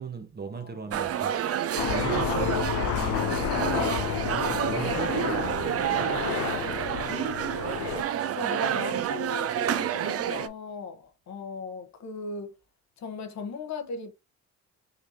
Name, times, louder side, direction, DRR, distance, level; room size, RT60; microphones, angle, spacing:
voice 1, 0.0-1.4 1.9-4.0 4.2-6.2, right 5 dB, 35° right, 0.9 m, -39 dB
voice 2, 0.5-1.0 4.8-5.0 8.2-12.5 13.0-14.1, left 4 dB, 65° left, 1.1 m, -38 dB
sound 1, 0.9-10.5, right 10 dB, 50° right, 0.6 m, -29 dB
Aircraft, 1.8-8.0, left 11 dB, 80° left, 0.5 m, -30 dB
5.2 x 2.9 x 2.7 m
cardioid pair, 90°, 30 cm